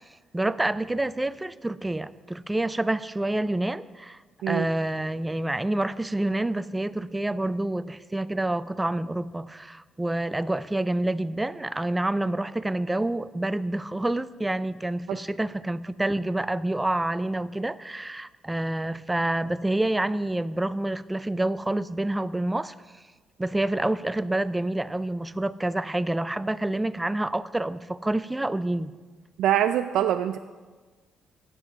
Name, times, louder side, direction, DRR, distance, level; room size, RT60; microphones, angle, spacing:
voice 1, 0.3-4.2 4.5-22.7 23.4-28.9, right 1 dB, 10° right, 15 dB, 0.4 m, -28 dB
voice 2, 29.4-30.4, right 11 dB, 85° right, 9 dB, 0.3 m, -24 dB
9.9 x 7.8 x 6.7 m, 1.4 s
cardioid pair, 90°, 0 cm